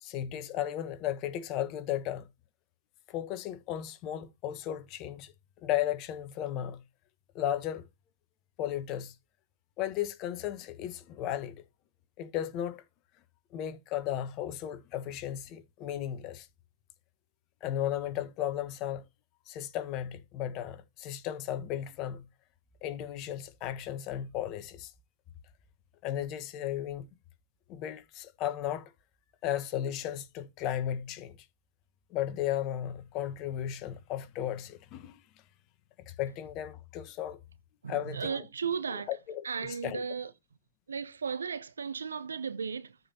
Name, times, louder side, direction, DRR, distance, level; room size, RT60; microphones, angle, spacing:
voice 1, 0.0-2.3 3.1-5.3 5.6-6.8 7.3-7.8 8.6-9.1 9.8-11.6 12.2-12.8 13.5-16.5 17.6-19.0 19.5-22.2 22.8-24.9 26.0-27.0 27.7-28.9 29.4-31.4 32.1-35.2 36.0-37.4 37.9-38.4 38.9-40.0, left 11 dB, 40° left, 1.3 m, -35 dB
voice 2, 37.8-39.1 39.4-40.3 40.9-43.0, right 6 dB, 75° right, 0.7 m, -35 dB
14.0 x 5.5 x 2.8 m
figure-of-eight pair, 100°, 0 cm